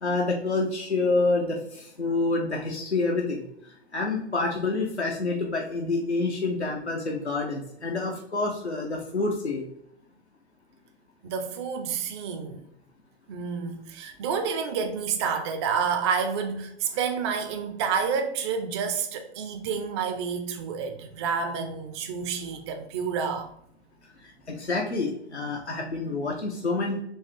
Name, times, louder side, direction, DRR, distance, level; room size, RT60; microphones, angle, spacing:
voice 1, 0.0-9.7 24.2-27.0, left 3 dB, 90° left, 0.7 m, -28 dB
voice 2, 11.2-12.7 13.3-23.5, right 6 dB, 25° right, 0.4 m, -29 dB
4.5 x 2.8 x 3.1 m
figure-of-eight pair, 110°, 32 cm